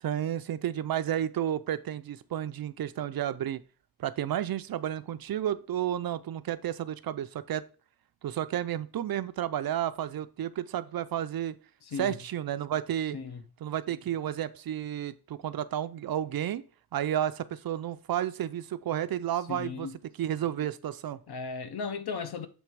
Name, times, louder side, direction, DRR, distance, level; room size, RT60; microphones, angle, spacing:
voice 1, 0.0-3.6 4.0-7.7 8.2-11.5 12.0-13.2 13.6-16.6 16.9-19.9 20.2-21.2, right 11 dB, 65° right, 0.5 m, -32 dB
voice 2, 11.9-12.2 13.1-13.4 19.5-20.0 21.3-22.5, left 5 dB, 70° left, 0.9 m, -36 dB
7.3 x 3.3 x 4.6 m
wide cardioid pair, 165°, 40 cm